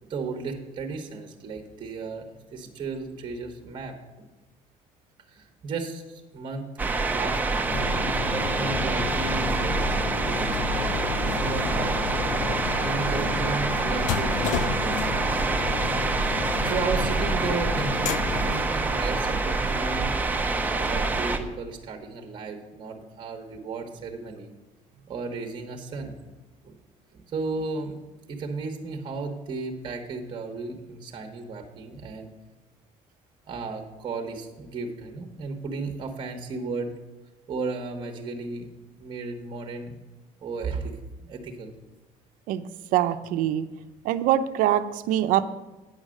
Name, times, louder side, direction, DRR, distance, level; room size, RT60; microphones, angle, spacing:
voice 1, 0.0-2.2 2.5-4.2 5.3-6.6 6.9-8.2 8.6-12.0 12.8-15.3 16.6-20.2 20.6-24.5 25.1-26.2 26.6-26.8 27.1-28.0 28.3-32.3 33.5-36.9 37.5-38.7 39.0-40.0 40.4-41.8, right 4 dB, 35° right, 5 dB, 1.1 m, -34 dB
sound 1, 6.8-21.4, right 3 dB, 10° right, 0.7 m, -26 dB
sound 2, 7.7-18.7, left 10 dB, 70° left, 0.4 m, -32 dB
voice 2, 42.5-43.7 44.0-45.4, right 12 dB, 80° right, 12 dB, 0.6 m, -24 dB
9.4 x 6.4 x 6.3 m, 1.1 s
cardioid pair, 135°, 14 cm